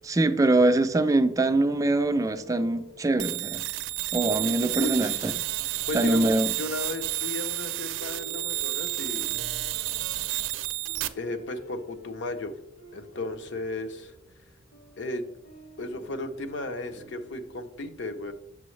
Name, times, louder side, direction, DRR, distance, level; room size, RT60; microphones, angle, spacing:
voice 1, 0.1-3.6 4.1-5.3 5.9-6.5, right 2 dB, 15° right, 9 dB, 0.3 m, -23 dB
sound 1, 2.3-17.6, equal, 85° left, 2.3 m, -50 dB
sound 2, 3.2-11.1, right 16 dB, 80° right, 0.4 m, -31 dB
voice 2, 4.7-5.3 5.9-9.4 11.2-12.5 12.9-14.1 15.0-15.3 15.8-18.3, left 2 dB, 65° left, 7 dB, 0.6 m, -35 dB
6.9 x 6.1 x 3.1 m, 0.79 s
head